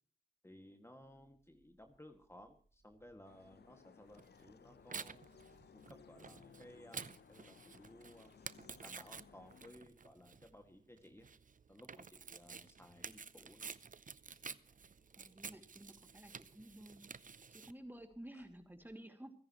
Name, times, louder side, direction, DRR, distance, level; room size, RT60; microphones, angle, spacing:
voice 1, 0.4-5.2 5.7-8.3 8.8-11.3 11.7-13.7 18.3-18.4, left 1 dB, 15° left, 5 dB, 2.1 m, -59 dB
sound 1, 1.0-19.0, right 5 dB, 85° right, 3.4 m, -76 dB
sound 2, 3.2-9.7, left 7 dB, 70° left, 0.7 m, -62 dB
Tearing, 4.2-17.7, right 5 dB, 50° right, 0.7 m, -51 dB
voice 2, 15.2-17.0 17.5-19.3, right 1 dB, 10° right, 6 dB, 2.6 m, -53 dB
28.5 x 10.5 x 3.1 m, 0.44 s
cardioid pair, 40°, 18 cm